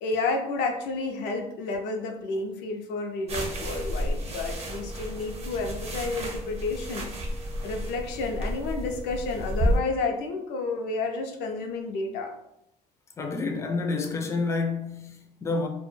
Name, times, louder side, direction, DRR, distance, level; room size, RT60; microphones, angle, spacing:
voice 1, 0.0-7.1 7.6-12.3, left 3 dB, 85° left, 0.4 m, -31 dB
sound 1, 3.3-9.8, equal, 40° right, 0.6 m, -31 dB
voice 2, 13.2-15.7, left 3 dB, 15° left, 0.3 m, -29 dB
2.1 x 2.1 x 3.0 m
cardioid pair, 110°, 17 cm